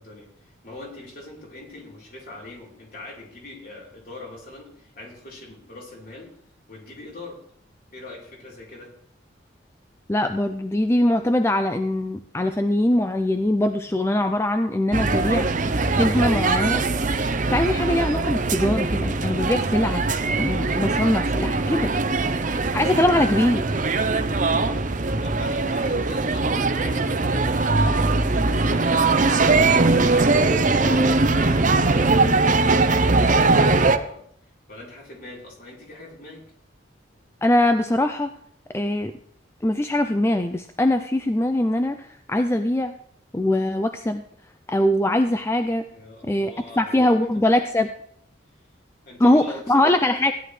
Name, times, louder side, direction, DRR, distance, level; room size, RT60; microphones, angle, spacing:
voice 1, 0.0-6.3 6.7-7.4 7.9-8.9 23.1-23.4 25.2-30.0 30.5-32.7 33.1-34.2 34.7-36.4 45.9-47.3 49.1-50.0, left 2 dB, 50° left, -3 dB, 3.8 m, -42 dB
voice 2, 10.1-15.6 15.9-16.8 17.2-20.0 20.4-21.9 22.7-23.6 37.4-38.3 38.7-39.1 39.6-42.9 43.3-44.2 44.7-45.8 46.2-47.9 49.2-50.3, left 1 dB, 15° left, 8 dB, 0.4 m, -22 dB
sound 1, 14.9-34.0, right 3 dB, 40° right, 0.7 m, -21 dB
16.0 x 10.5 x 3.2 m, 0.65 s
head